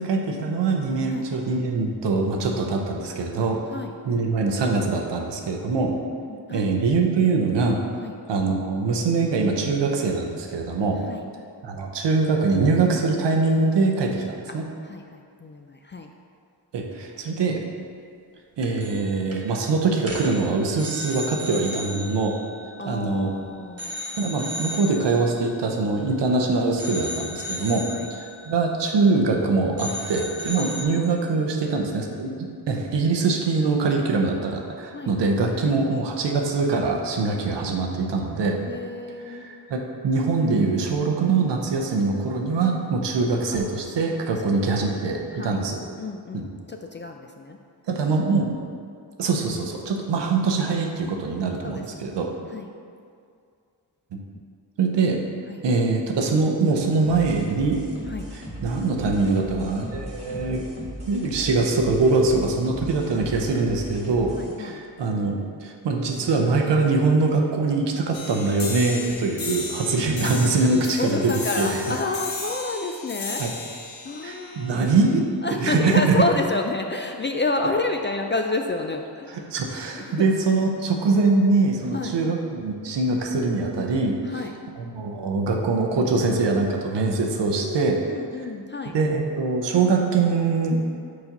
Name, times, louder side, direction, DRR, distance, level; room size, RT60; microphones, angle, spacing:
voice 1, 0.0-3.6 4.0-6.0 6.5-7.8 8.3-11.0 11.6-14.6 16.7-17.6 18.6-22.4 22.8-23.4 24.2-38.6 39.3-45.8 46.3-46.4 47.9-48.5 49.2-52.3 54.1-54.2 54.8-55.2 55.6-57.8 58.6-60.6 61.1-64.3 64.6-72.0 73.4-73.5 74.2-76.2 79.5-84.2 84.8-88.0 88.9-90.8, right 3 dB, 90° right, 2 dB, 0.7 m, -23 dB
voice 2, 5.9-6.7 8.0-8.2 11.1-11.3 14.5-14.6 14.8-16.1 22.8-24.0 27.9-28.1 30.5-31.5 34.9-35.2 35.6-35.7 38.6-39.5 43.5-43.6 44.3-44.4 45.3-45.6 46.0-47.6 51.6-52.2 52.5-52.7 55.5-55.6 58.1-58.3 64.3-64.8 70.2-70.3 71.0-73.4 74.0-74.8 75.4-79.5 80.0-80.3 81.9-82.2 84.2-84.5 87.6-89.0, left 3 dB, 30° left, 4 dB, 0.4 m, -30 dB
sound 1, 18.6-19.1 19.3-19.5 20.0-23.3 23.8-26.4 26.8-29.5 29.8-30.9, left 1 dB, 35° right, 1.1 m, -36 dB
sound 2, 57.0-64.5, equal, 15° right, 1.5 m, -37 dB
sound 3, 68.1-75.1, left 3 dB, 55° left, 1.0 m, -35 dB
4.8 x 4.2 x 5.2 m, 2.3 s
cardioid pair, 50°, 41 cm